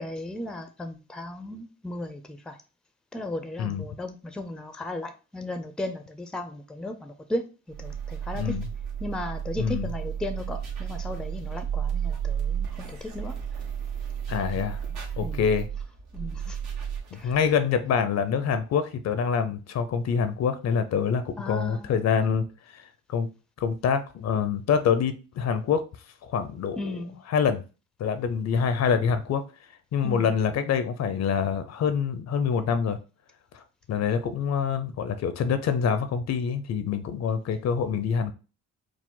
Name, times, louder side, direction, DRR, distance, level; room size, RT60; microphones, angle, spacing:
voice 1, 0.0-2.6 3.1-7.4 7.8-8.5 9.0-13.3 15.2-15.5 16.1-16.6 17.1-17.4 21.4-21.9 26.8-27.2 30.0-30.3, left 1 dB, ahead, 0.5 m, -35 dB
sound 1, 7.7-17.6, right 8 dB, 70° right, 1.3 m, -33 dB
voice 2, 8.3-8.6 9.6-9.9 14.3-14.8 15.2-15.7 17.1-22.4 22.7-22.8 23.1-23.3 23.6-25.9 26.2-26.9 27.3-27.6 28.0-29.4 29.9-33.0 33.5-33.6 33.9-38.3, left 6 dB, 60° left, 0.6 m, -26 dB
4.8 x 2.1 x 3.7 m
cardioid pair, 90°, 30 cm